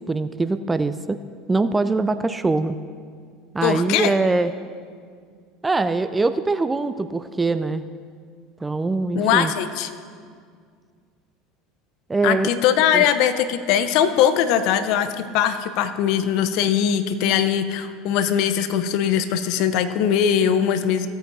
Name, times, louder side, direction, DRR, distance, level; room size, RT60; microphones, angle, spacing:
voice 1, 0.1-1.2 1.5-2.8 3.5-4.5 5.6-7.8 8.6-9.5 12.1-12.5 12.9-13.0, right 3 dB, 15° right, 12 dB, 0.4 m, -22 dB
voice 2, 3.6-4.1 9.1-9.9 12.2-21.1, left 9 dB, 60° left, 11 dB, 0.7 m, -21 dB
16.5 x 8.9 x 2.7 m, 2.1 s
hypercardioid pair, 75°, 0 cm